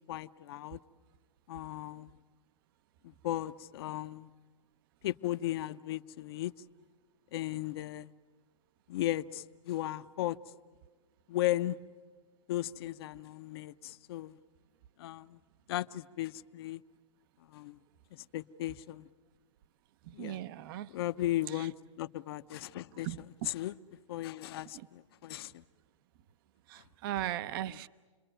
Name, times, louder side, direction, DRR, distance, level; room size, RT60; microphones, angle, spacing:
voice 1, 0.1-0.8 1.5-2.1 3.0-4.3 5.0-6.5 7.3-8.1 8.9-10.4 11.3-11.8 12.5-14.4 15.0-15.4 15.7-16.8 17.5-17.8 18.1-19.1 20.1-20.4 20.9-23.8 24.1-25.6 27.7-27.8, left 14 dB, 50° left, 0.8 m, -36 dB
voice 2, 20.1-20.9 21.6-21.7 23.0-23.2 24.7-24.9 26.7-27.9, right 13 dB, 40° right, 0.7 m, -38 dB
29.0 x 22.0 x 9.1 m
hypercardioid pair, 140°, 17 cm